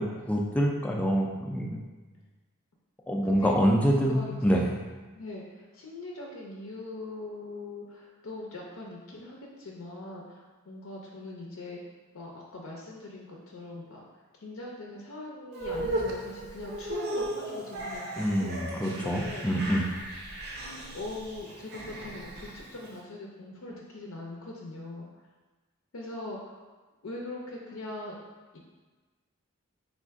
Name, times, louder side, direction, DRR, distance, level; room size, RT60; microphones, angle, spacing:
voice 1, 0.0-1.8 3.1-4.7 18.2-19.8, equal, 5° left, -1 dB, 0.3 m, -26 dB
voice 2, 3.2-3.6 3.9-4.7 5.1-11.8 12.1-14.1 14.4-19.5 20.9-25.1 25.9-26.6 27.0-28.2 28.5-28.6, left 2 dB, 70° left, -2 dB, 0.6 m, -41 dB
sound 1, 15.5-22.9, right 1 dB, 50° right, 0.6 m, -36 dB
3.4 x 2.5 x 4.5 m, 1.3 s
head